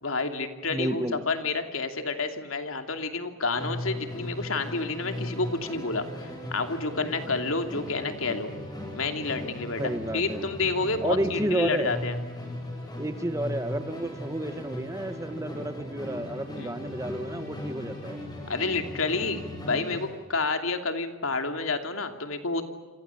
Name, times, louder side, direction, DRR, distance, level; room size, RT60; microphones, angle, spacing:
voice 1, 0.0-8.5 8.9-12.1 16.6-16.7 18.5-22.6, left 3 dB, 85° left, 6 dB, 2.8 m, -29 dB
voice 2, 0.7-1.2 9.8-10.4 11.0-12.0 13.0-18.2, right 1 dB, 15° right, 10 dB, 1.4 m, -31 dB
Musical instrument, 3.5-20.2, left 1 dB, 20° left, 7.4 m, -38 dB
29.0 x 26.5 x 7.2 m, 1.4 s
head